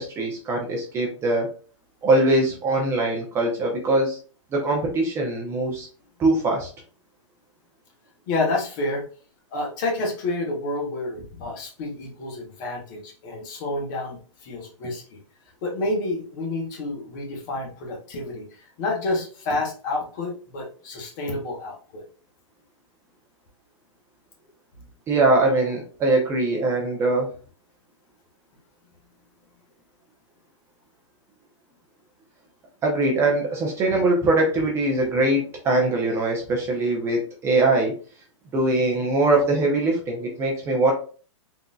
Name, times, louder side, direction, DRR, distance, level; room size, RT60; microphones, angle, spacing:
voice 1, 0.0-1.5 2.0-4.2 4.5-5.9 6.2-6.7 25.1-27.3 32.8-37.9 38.5-40.9, right 2 dB, 15° right, -1 dB, 0.5 m, -22 dB
voice 2, 8.3-9.0 9.5-15.0 15.6-22.0, left 2 dB, 40° left, 1 dB, 1.0 m, -29 dB
3.6 x 2.6 x 2.3 m, 0.39 s
hypercardioid pair, 150°, 17 cm